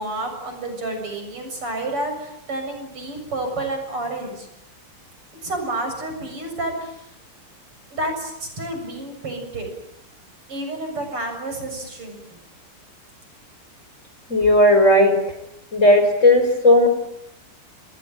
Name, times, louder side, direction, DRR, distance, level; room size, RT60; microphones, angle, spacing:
voice 1, 0.0-4.5 5.4-7.1 7.9-9.7 10.5-12.4, right 2 dB, 90° right, 5 dB, 8.1 m, -30 dB
voice 2, 14.3-15.2 15.7-16.9, left 1 dB, 30° left, 8 dB, 4.8 m, -15 dB
28.5 x 21.0 x 9.1 m, 0.81 s
omnidirectional pair, 2.4 m